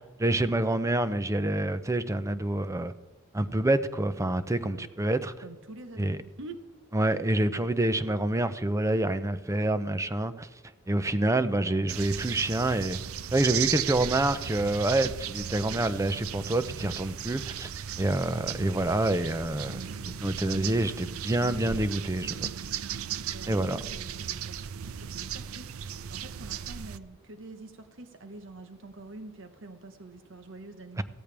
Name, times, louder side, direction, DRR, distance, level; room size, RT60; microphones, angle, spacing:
voice 1, 0.0-2.9 3.3-5.3 6.0-6.2 6.9-10.5 10.9-13.0 13.3-17.7 18.0-22.5 23.5-23.8 31.0-31.1, right 1 dB, 15° right, 12 dB, 0.6 m, -27 dB
voice 2, 5.4-6.6 23.2-31.0, right 2 dB, 65° right, 8 dB, 1.1 m, -46 dB
sound 1, 11.9-27.0, right 8 dB, 90° right, 0.5 m, -36 dB
15.5 x 13.5 x 3.4 m, 1.2 s
head